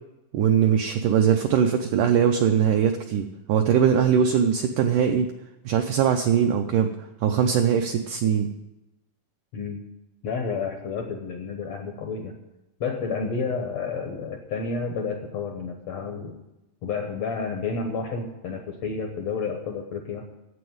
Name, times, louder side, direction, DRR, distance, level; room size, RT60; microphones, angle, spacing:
voice 1, 0.3-5.3 5.6-6.9 7.2-8.5, right 8 dB, 90° right, 5 dB, 1.8 m, -21 dB
voice 2, 10.2-12.3 12.8-16.3 16.8-20.2, left 5 dB, 75° left, 3 dB, 1.5 m, -30 dB
9.6 x 7.9 x 9.4 m, 0.96 s
omnidirectional pair, 4.5 m